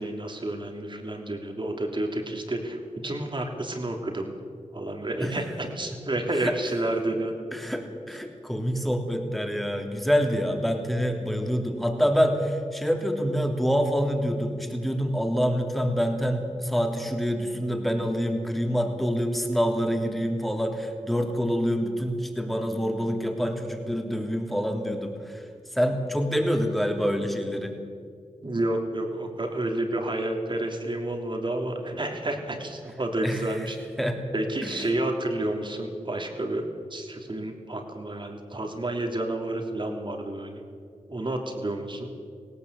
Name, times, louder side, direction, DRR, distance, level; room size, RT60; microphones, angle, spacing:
voice 1, 0.0-4.3 4.7-7.3 28.4-33.8 34.3-40.6 41.1-42.1, right 1 dB, 40° right, 3 dB, 3.2 m, -30 dB
voice 2, 7.5-25.5 25.7-27.8 33.2-33.5 34.0-34.2 34.6-34.7, equal, ahead, 3 dB, 3.0 m, -26 dB
18.0 x 18.0 x 8.2 m, 2.3 s
cardioid pair, 65°, 13 cm